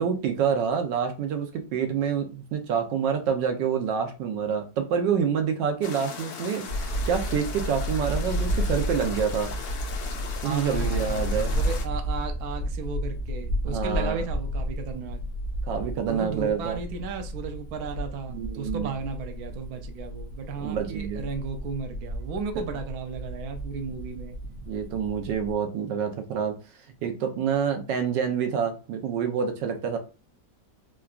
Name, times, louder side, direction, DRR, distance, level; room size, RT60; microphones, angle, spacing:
voice 1, 0.0-9.5 10.4-11.5 13.7-14.2 15.7-16.8 18.3-18.9 20.6-21.2 24.7-26.6 27.0-30.0, right 7 dB, 85° right, 1.3 m, -27 dB
sound 1, 5.8-11.9, left 6 dB, 80° left, 1.3 m, -39 dB
sound 2, 6.7-25.5, equal, 60° left, 0.6 m, -32 dB
voice 2, 10.4-15.2 16.1-24.4, right 5 dB, 70° right, 1.0 m, -35 dB
3.7 x 2.2 x 2.4 m
omnidirectional pair, 1.9 m